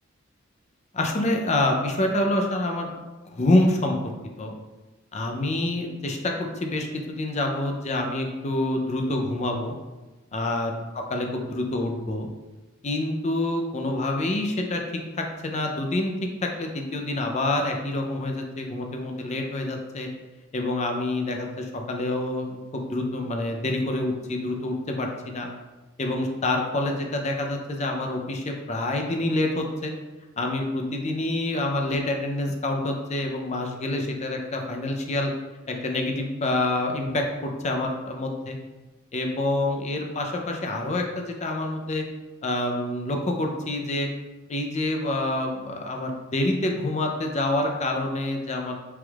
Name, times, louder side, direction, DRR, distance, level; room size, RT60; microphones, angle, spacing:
voice 1, 0.9-2.9 3.2-4.1 4.4-4.5 5.1-9.7 10.3-10.7 11.1-12.3 12.8-14.8 15.1-16.1 16.4-20.1 20.5-25.1 25.3-25.5 26.0-29.9 30.4-35.3 35.7-38.6 39.1-42.0 42.4-44.1 44.5-48.8, left 2 dB, 35° left, 2 dB, 0.5 m, -27 dB
6.1 x 3.5 x 2.4 m, 1.2 s
head